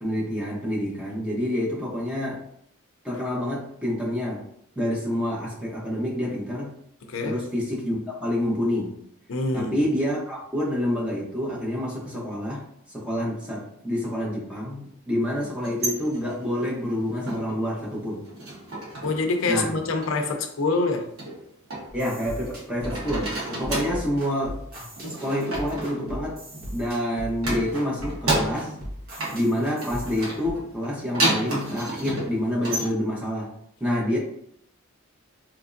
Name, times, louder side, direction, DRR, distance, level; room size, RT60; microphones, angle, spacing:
voice 1, 0.0-2.4 3.0-4.4 4.8-6.7 7.2-9.0 9.5-12.6 12.9-18.2 19.5-19.7 21.9-24.6 25.1-26.4 26.7-28.7 29.3-33.5 33.8-34.2, left 1 dB, 5° right, -4 dB, 0.8 m, -27 dB
voice 2, 7.1-7.4 9.3-9.8 19.0-21.1 23.5-23.7, left 3 dB, 65° left, 4 dB, 0.5 m, -26 dB
sound 1, 15.5-17.7 18.0-19.3 19.5-20.1 21.2-22.5 22.8-24.1 25.0-26.9 27.4-28.9 29.2-32.9, right 1 dB, 80° right, 1.1 m, -31 dB
sound 2, 21.9-30.5, equal, 45° right, 1.3 m, -38 dB
3.4 x 3.1 x 2.5 m, 0.72 s
head